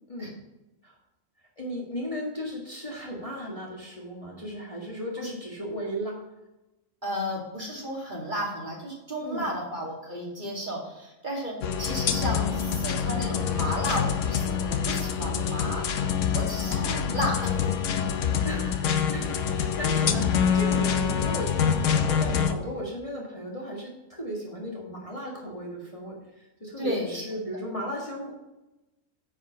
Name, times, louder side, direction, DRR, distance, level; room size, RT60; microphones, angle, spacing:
voice 1, 1.6-6.2 9.2-9.5 16.7-17.2 18.4-28.3, equal, 25° left, -3 dB, 1.8 m, -36 dB
voice 2, 7.0-15.8 16.3-17.7 26.8-27.2, equal, 35° right, -3 dB, 2.5 m, -33 dB
sound 1, 11.6-22.5, left 7 dB, 65° left, 1.0 m, -26 dB
9.8 x 5.1 x 5.5 m, 1.0 s
omnidirectional pair, 1.5 m